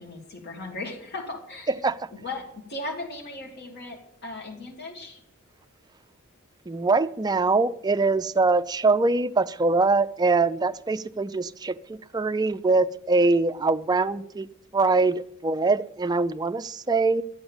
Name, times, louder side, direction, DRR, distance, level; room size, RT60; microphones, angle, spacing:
voice 1, 0.0-1.7 2.1-5.2, left 2 dB, 50° left, 2.4 m, -37 dB
voice 2, 6.7-14.5 14.7-17.2, right 3 dB, 20° right, 0.4 m, -23 dB
12.5 x 8.4 x 7.2 m
head